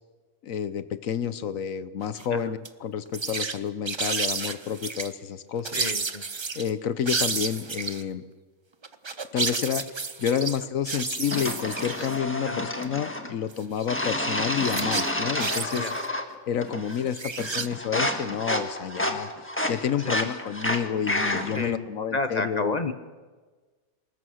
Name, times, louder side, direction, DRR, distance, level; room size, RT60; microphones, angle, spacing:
voice 1, 0.4-5.8 6.5-8.2 9.3-9.9 10.2-15.8 16.5-19.3 19.7-22.8, left 8 dB, 65° left, 14 dB, 1.1 m, -29 dB
sound 1, 2.0-2.3 2.6-2.7 3.1-3.6 3.9-5.1 5.6-6.7 7.1-8.0 8.8-12.2 12.8-12.9 13.5-14.1 14.6-16.1 17.0-17.7, right 4 dB, 35° right, 0.4 m, -31 dB
voice 2, 5.7-6.2 12.5-12.7 15.7-15.9 20.0-20.3 21.5-22.9, left 3 dB, 35° left, 9 dB, 0.8 m, -31 dB
sound 2, 11.3-13.3 13.9-16.3 16.6-17.1 17.4-21.7, left 1 dB, 10° left, 1.4 m, -30 dB
24.0 x 20.5 x 6.3 m, 1.4 s
omnidirectional pair, 1.6 m